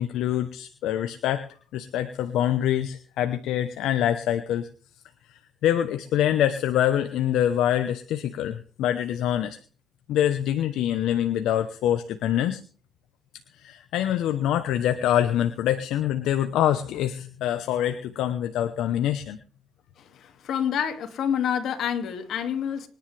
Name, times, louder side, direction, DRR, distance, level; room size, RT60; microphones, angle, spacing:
voice 1, 0.0-1.4 1.7-4.7 5.3-9.6 10.1-12.6 13.5-19.4, left 11 dB, 85° left, 8 dB, 1.1 m, -25 dB
voice 2, 20.2-22.9, left 8 dB, 70° left, 7 dB, 2.4 m, -27 dB
25.5 x 10.5 x 3.5 m, 0.39 s
cardioid pair, 90°, 0 cm